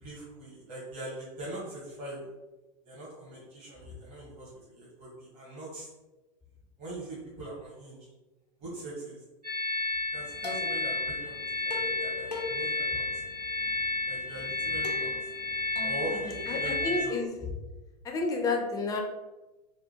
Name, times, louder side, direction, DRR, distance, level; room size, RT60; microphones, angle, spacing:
voice 1, 0.0-2.3 2.8-5.9 6.8-8.0 8.6-9.2 10.1-13.2 14.0-15.1 15.8-17.2, right 1 dB, 35° right, -7 dB, 1.3 m, -41 dB
sound 1, 9.4-17.0, left 2 dB, 85° right, 1.1 m, -32 dB
sound 2, 10.1-16.9, left 3 dB, 85° left, 0.6 m, -43 dB
voice 2, 16.5-17.3 18.0-19.0, left 3 dB, 20° left, 2 dB, 0.5 m, -30 dB
3.6 x 2.2 x 2.7 m, 1.1 s
figure-of-eight pair, 90°, 20 cm